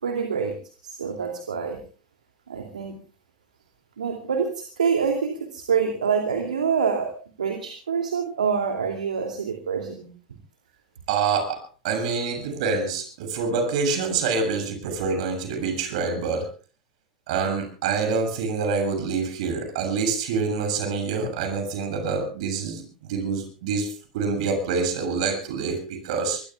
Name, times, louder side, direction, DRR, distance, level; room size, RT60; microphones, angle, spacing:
voice 1, 0.0-0.6 0.8-1.8 2.5-3.0 4.0-7.1 7.4-10.1, right 6 dB, 80° right, 3 dB, 2.6 m, -26 dB
voice 2, 11.1-16.5 17.3-26.4, right 4 dB, 65° right, 7 dB, 7.3 m, -26 dB
23.5 x 23.0 x 2.3 m, 0.37 s
hypercardioid pair, 85°, 4 cm